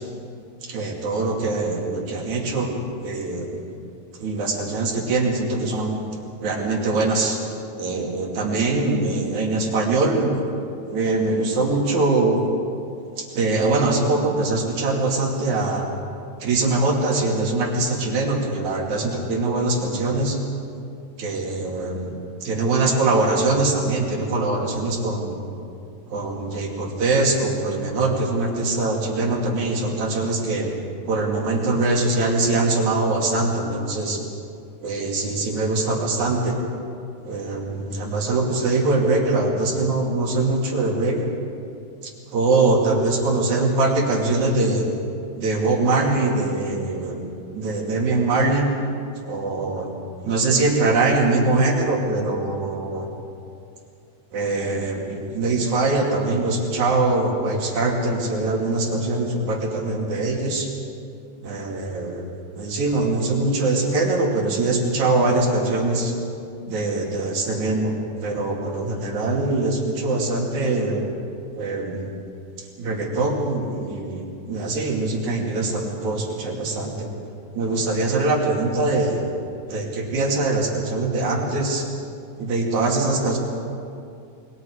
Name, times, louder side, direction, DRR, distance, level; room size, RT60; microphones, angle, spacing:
voice 1, 0.6-2.7 3.0-3.6 4.2-6.0 6.4-7.4 7.8-10.5 10.9-12.4 13.2-15.9 16.4-20.4 21.2-25.4 26.1-30.7 31.1-34.2 34.8-36.6 37.2-41.3 42.0-44.9 45.4-47.2 47.5-48.7 49.3-49.9 50.2-53.1 54.3-60.7 61.4-62.3 62.5-66.1 66.7-67.9 68.2-71.1 71.6-72.1 72.8-77.1 77.5-79.3 79.7-81.9 82.4-83.4, right 2 dB, 65° right, -1 dB, 4.1 m, -22 dB
28.5 x 22.0 x 4.8 m, 2.5 s
omnidirectional pair, 3.7 m